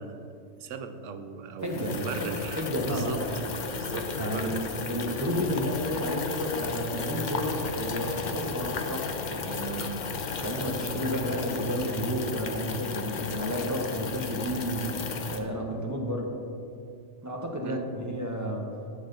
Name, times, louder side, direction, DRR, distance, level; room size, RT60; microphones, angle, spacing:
voice 1, 0.0-3.2 3.7-4.6 5.0-5.1 17.6-17.9, right 5 dB, 90° right, 9 dB, 1.0 m, -37 dB
sound 1, 1.6-15.4, left 5 dB, 45° left, 0.7 m, -34 dB
voice 2, 1.6-2.3 2.6-3.1 3.9-4.5 4.9-10.1 10.4-14.9 15.3-16.4 17.2-18.7, equal, 15° right, 0 dB, 1.0 m, -32 dB
11.0 x 7.5 x 3.9 m, 2.6 s
omnidirectional pair, 1.3 m